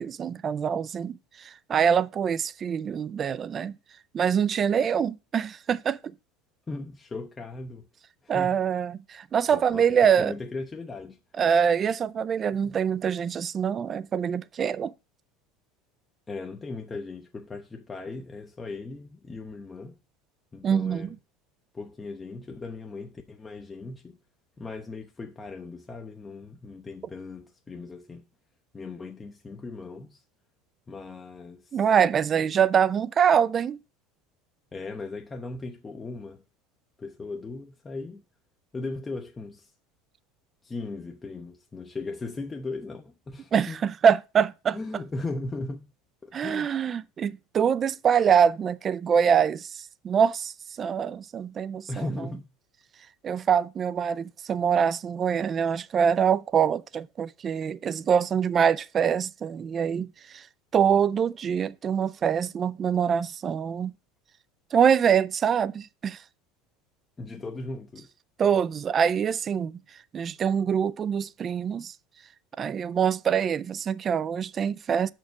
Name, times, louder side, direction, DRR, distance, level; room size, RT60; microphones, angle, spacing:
voice 1, 0.0-3.7 4.1-6.0 8.3-10.3 11.4-14.9 20.6-21.1 31.7-33.8 43.5-44.8 46.3-52.1 53.2-60.5 60.7-63.9 64.7-66.2 68.4-69.8 70.1-71.9 72.6-75.1, right 7 dB, 30° right, 0.3 m, -24 dB
voice 2, 6.7-7.9 8.2-8.6 9.5-11.2 12.6-12.7 16.3-20.0 20.5-21.1 21.7-24.2 24.6-28.3 28.7-30.2 30.9-31.8 34.7-36.4 37.0-38.2 38.7-39.7 40.6-43.8 44.7-45.9 46.2-46.8 51.9-52.4 67.2-68.1, left 3 dB, 20° left, 0.6 m, -38 dB
5.9 x 4.5 x 5.8 m
supercardioid pair, 120°, 0 cm